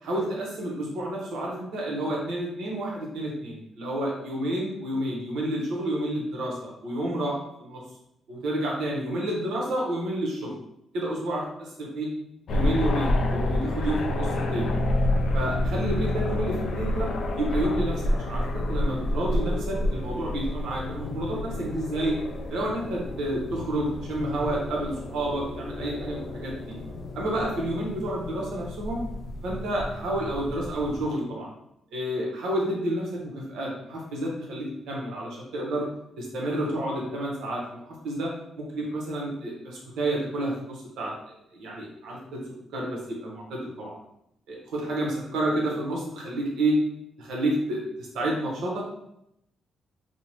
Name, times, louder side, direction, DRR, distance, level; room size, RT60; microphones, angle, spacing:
voice 1, 0.0-7.8 8.3-10.6 10.9-12.1 12.5-14.6 15.3-17.1 17.4-22.2 22.5-26.7 27.1-29.0 29.4-31.5 31.9-35.9 36.2-41.1 41.5-42.4 42.7-43.9 44.5-46.8 47.2-48.8, right 1 dB, 85° right, -3 dB, 0.8 m, -30 dB
sound 1, 12.5-31.0, left 1 dB, 60° left, 0.3 m, -29 dB
2.7 x 2.0 x 2.9 m, 0.78 s
cardioid pair, 120°, 0 cm